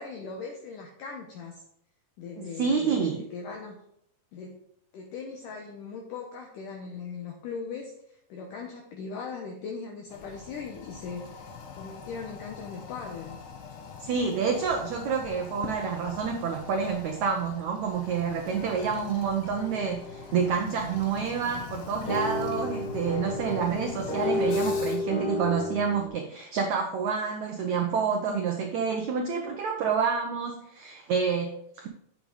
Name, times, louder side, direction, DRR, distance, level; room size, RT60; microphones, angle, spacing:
voice 1, 0.0-1.6 2.2-3.8 4.3-4.6 4.9-13.4, left 5 dB, 70° left, 1 dB, 2.2 m, -39 dB
voice 2, 2.6-3.2 14.0-31.9, right 6 dB, 80° right, 3 dB, 1.6 m, -28 dB
Toilet flush, 10.1-25.2, left 6 dB, 90° left, 3.3 m, -43 dB
sound 1, 19.6-26.1, left 2 dB, 50° left, 2.2 m, -32 dB
8.7 x 7.6 x 3.9 m, 0.74 s
omnidirectional pair, 4.6 m